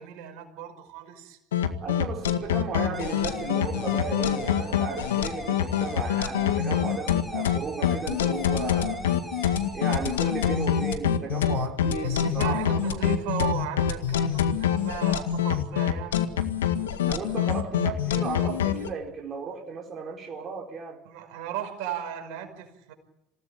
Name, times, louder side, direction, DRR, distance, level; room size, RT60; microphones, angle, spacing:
voice 1, 0.0-1.4 12.0-16.3 21.1-22.9, right 10 dB, 70° right, 5.5 m, -35 dB
sound 1, 1.5-18.9, left 9 dB, 85° left, 1.9 m, -25 dB
voice 2, 1.8-9.1 9.7-12.7 17.0-21.0, right 5 dB, 40° right, 4.3 m, -35 dB
sound 2, 2.9-10.9, equal, 5° left, 5.6 m, -40 dB
27.5 x 18.0 x 8.8 m
hypercardioid pair, 70°, 0 cm